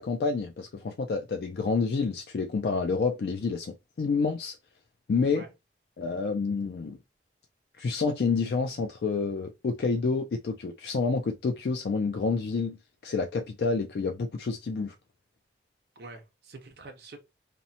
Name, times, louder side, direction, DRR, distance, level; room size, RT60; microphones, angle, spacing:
voice 1, 0.0-4.6 5.1-5.4 6.0-7.0 7.8-12.8 13.0-14.9, left 4 dB, 70° left, 0.3 m, -28 dB
voice 2, 5.2-5.5 16.0-17.2, right 2 dB, 65° right, 0.5 m, -45 dB
2.8 x 2.0 x 2.6 m
head